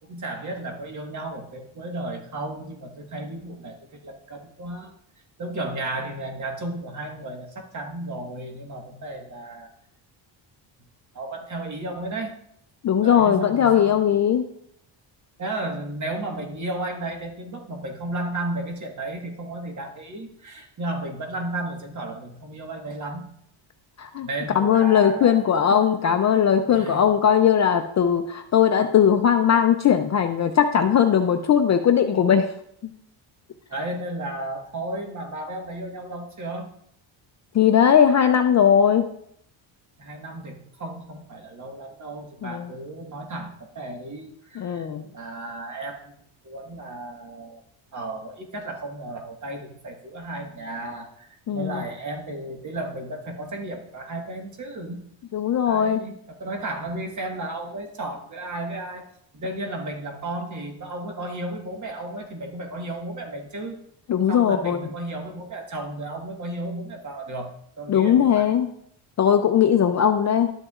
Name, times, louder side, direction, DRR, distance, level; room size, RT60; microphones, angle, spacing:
voice 1, 0.0-4.9 5.4-9.7 11.1-12.3 12.9-14.0 15.4-23.3 24.2-25.4 26.3-27.0 33.7-36.7 40.0-47.6 47.9-55.0 55.6-59.1 59.3-63.8 64.3-67.5 67.8-68.5, right 2 dB, 35° right, 3 dB, 1.5 m, -34 dB
voice 2, 12.8-14.4 24.0-24.3 24.5-32.5 32.8-32.9 37.5-39.1 42.4-42.7 44.6-45.0 51.5-51.8 55.3-56.0 64.1-64.8 67.9-68.7 69.2-70.5, left 8 dB, 35° left, 6 dB, 0.4 m, -19 dB
12.0 x 8.0 x 2.4 m, 0.70 s
cardioid pair, 135°, 49 cm